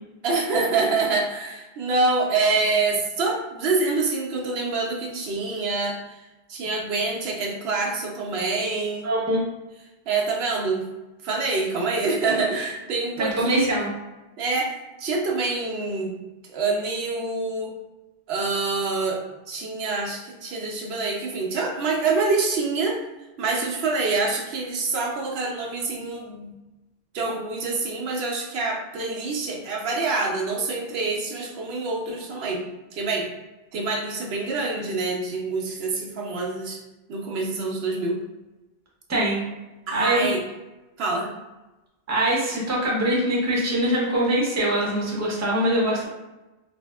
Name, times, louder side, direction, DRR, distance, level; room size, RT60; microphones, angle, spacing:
voice 1, 0.2-6.2 6.5-9.1 10.1-10.9 11.2-13.7 14.4-16.1 16.5-17.7 18.3-23.0 23.4-26.5 27.1-32.6 32.9-33.3 33.7-36.8 37.1-38.2 39.9-40.4 41.0-41.3, right 3 dB, 80° right, -1 dB, 0.9 m, -26 dB
voice 2, 9.0-9.4 13.2-13.9 39.1-39.4 39.9-40.3 42.1-46.1, right 1 dB, 20° right, -4 dB, 0.6 m, -23 dB
3.4 x 2.5 x 2.2 m, 1.1 s
omnidirectional pair, 1.0 m